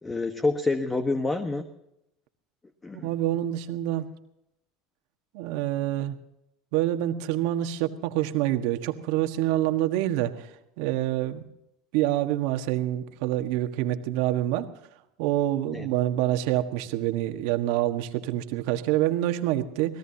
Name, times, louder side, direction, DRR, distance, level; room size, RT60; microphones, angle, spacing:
voice 1, 0.0-1.7 2.8-3.1 15.7-15.9, left 3 dB, 15° left, 7 dB, 1.4 m, -27 dB
voice 2, 2.9-4.1 5.3-6.2 6.7-11.4 11.9-14.7 15.2-20.0, right 14 dB, 70° right, 7 dB, 1.5 m, -26 dB
25.5 x 18.0 x 2.9 m, 0.82 s
supercardioid pair, 95°, 0 cm